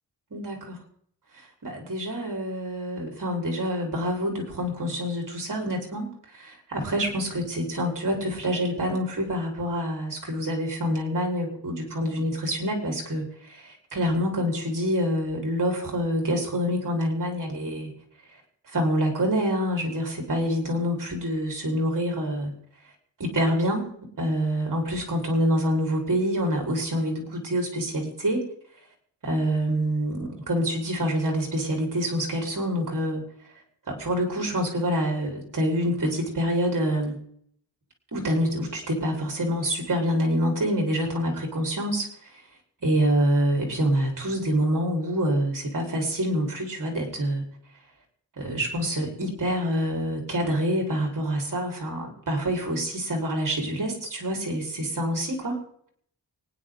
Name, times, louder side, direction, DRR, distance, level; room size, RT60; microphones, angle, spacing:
voice 1, 0.3-0.8 1.3-17.9 18.7-22.5 23.2-23.9 24.2-28.4 29.2-33.2 33.9-37.2 38.1-42.1 42.8-47.4 48.4-55.6, equal, 50° right, 1 dB, 4.6 m, -26 dB
24.5 x 9.8 x 3.8 m, 0.65 s
wide cardioid pair, 120°, 41 cm